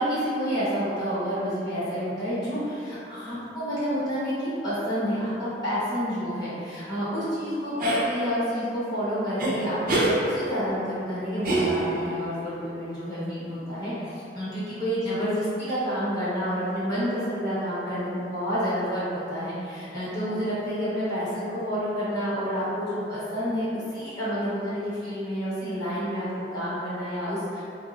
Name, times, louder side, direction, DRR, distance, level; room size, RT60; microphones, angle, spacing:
voice 1, 0.0-27.6, equal, 25° left, -12 dB, 0.9 m, -29 dB
sound 1, 7.8-8.1 9.4-9.5 9.9-10.1 11.4-12.1, right 2 dB, 55° right, 0.5 m, -24 dB
4.0 x 2.0 x 2.4 m, 2.7 s
head